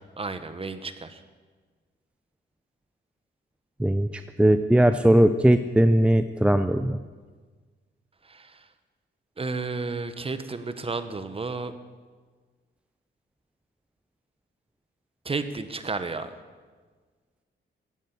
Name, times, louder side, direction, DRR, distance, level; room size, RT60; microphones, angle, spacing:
voice 1, 0.2-1.2 8.3-8.6 9.4-11.7 15.2-16.3, right 3 dB, 30° right, 11 dB, 1.3 m, -32 dB
voice 2, 3.8-7.0, right 1 dB, 5° right, 10 dB, 0.6 m, -19 dB
15.5 x 10.0 x 8.5 m, 1.4 s
cardioid pair, 80°, 20 cm